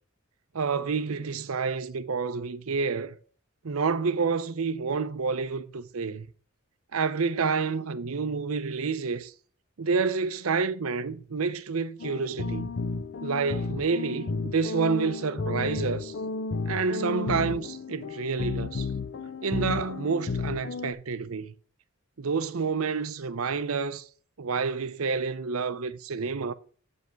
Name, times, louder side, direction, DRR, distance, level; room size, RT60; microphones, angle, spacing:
voice 1, 0.5-3.2 3.6-6.3 6.9-9.3 9.8-12.7 13.2-16.1 16.7-18.9 19.4-21.5 22.2-24.0 24.4-26.5, right 5 dB, 80° right, 0.7 m, -29 dB
sound 1, 12.0-20.9, left 3 dB, 55° left, 0.6 m, -33 dB
8.1 x 5.4 x 4.5 m
head